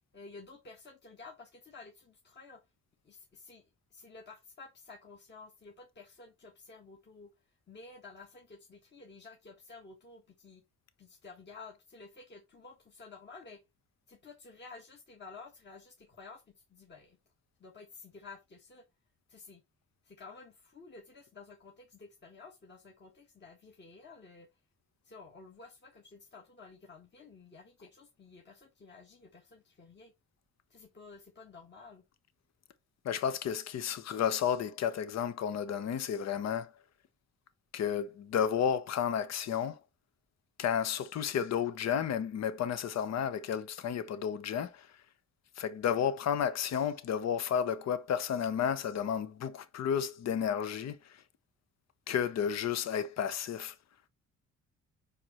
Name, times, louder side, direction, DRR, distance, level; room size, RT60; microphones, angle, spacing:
voice 1, 0.1-2.6 3.0-3.6 3.9-7.3 7.7-10.6 11.0-13.6 14.1-17.2 17.6-18.8 19.3-19.6 20.0-24.5 25.0-30.1 30.7-32.0, left 4 dB, 35° left, 1.6 m, -52 dB
voice 2, 33.0-36.7 37.7-39.8 40.6-44.9 45.6-51.2 52.1-53.7, left 8 dB, 60° left, 0.9 m, -32 dB
5.0 x 4.7 x 4.3 m
cardioid pair, 90°, 30 cm